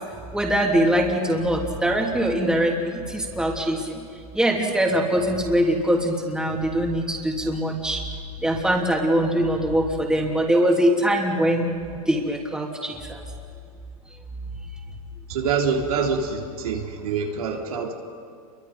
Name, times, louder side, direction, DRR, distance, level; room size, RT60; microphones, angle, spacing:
voice 1, 0.3-4.0 4.3-8.0 8.4-11.7 12.1-13.2, equal, 5° right, 0 dB, 2.9 m, -22 dB
voice 2, 15.3-17.9, right 5 dB, 75° right, 0 dB, 3.6 m, -25 dB
29.0 x 23.5 x 5.4 m, 2.2 s
hypercardioid pair, 120°, 19 cm